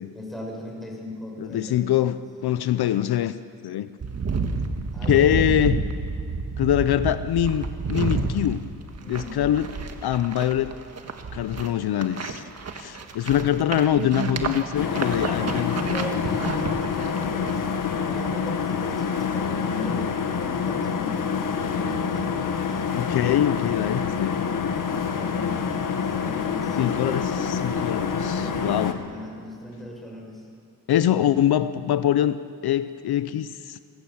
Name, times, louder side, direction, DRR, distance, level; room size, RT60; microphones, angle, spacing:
voice 1, 0.1-1.9 4.9-5.5 9.0-9.5 15.4-22.8 25.0-30.5, equal, ahead, -1 dB, 6.4 m, -39 dB
voice 2, 1.5-3.3 3.6-3.9 5.1-5.8 6.6-8.6 9.1-9.7 10.0-10.8 11.3-12.4 12.7-15.7 22.9-24.4 26.8-27.2 27.6-29.0 30.9-32.4 32.6-33.8, left 11 dB, 70° left, 13 dB, 0.7 m, -23 dB
sound 1, 4.0-17.5, right 4 dB, 40° right, 1.7 m, -30 dB
sound 2, 14.8-28.9, left 6 dB, 55° left, 1.7 m, -27 dB
27.5 x 17.0 x 7.3 m, 2.3 s
cardioid pair, 110°, 39 cm